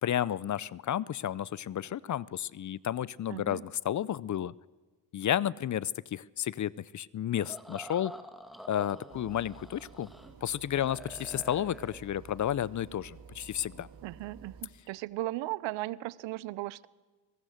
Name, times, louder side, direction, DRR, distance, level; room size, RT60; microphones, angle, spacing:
voice 1, 0.0-4.5 5.1-8.1 8.7-10.1 10.4-13.9, left 11 dB, 40° left, 22 dB, 0.6 m, -32 dB
voice 2, 3.3-3.6 14.0-16.9, right 18 dB, 75° right, 21 dB, 0.7 m, -37 dB
sound 1, 7.4-10.3 10.6-12.0, equal, ahead, 2.3 m, -48 dB
sound 2, 9.1-14.6, right 6 dB, 50° right, 2.3 m, -52 dB
23.0 x 19.5 x 6.6 m, 1.3 s
supercardioid pair, 60°, 45 cm